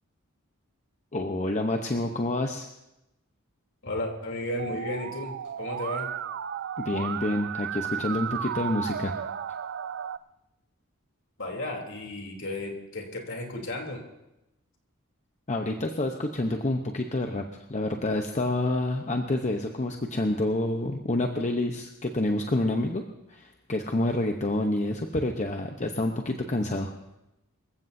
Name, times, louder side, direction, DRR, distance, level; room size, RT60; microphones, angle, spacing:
voice 1, 1.1-2.7 6.8-9.1 15.5-23.0 23.3-26.9, left 2 dB, 35° left, 4 dB, 0.8 m, -28 dB
voice 2, 3.8-6.0 11.4-14.0, left 1 dB, 60° left, 1 dB, 3.1 m, -34 dB
Musical instrument, 4.6-10.2, right 9 dB, 55° right, 0.4 m, -34 dB
25.5 x 15.5 x 2.7 m, 0.92 s
head